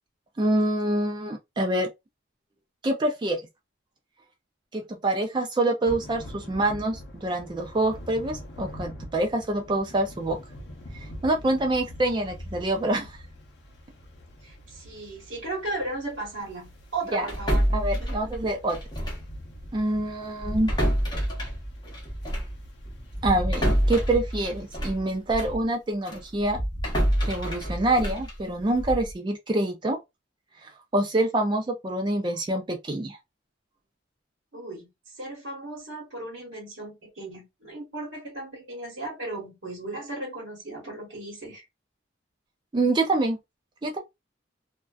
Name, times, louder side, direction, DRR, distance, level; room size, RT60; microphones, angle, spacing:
voice 1, 0.4-1.9 2.8-3.4 4.7-10.4 10.9-13.2 17.1-17.3 17.7-18.8 19.7-20.7 23.2-26.6 27.2-30.0 30.6-33.2 42.7-43.4 43.8-44.0, right 1 dB, 25° right, 0.3 m, -26 dB
Thunder / Rain, 5.8-24.9, left 1 dB, 65° left, 0.6 m, -45 dB
voice 2, 14.4-17.6 18.0-18.1 34.5-41.6, right 2 dB, 80° right, 1.1 m, -36 dB
sound 1, 17.3-19.3 19.6-19.8 20.4-25.6 26.0-29.1, equal, 20° left, 0.8 m, -28 dB
2.5 x 2.2 x 2.3 m
head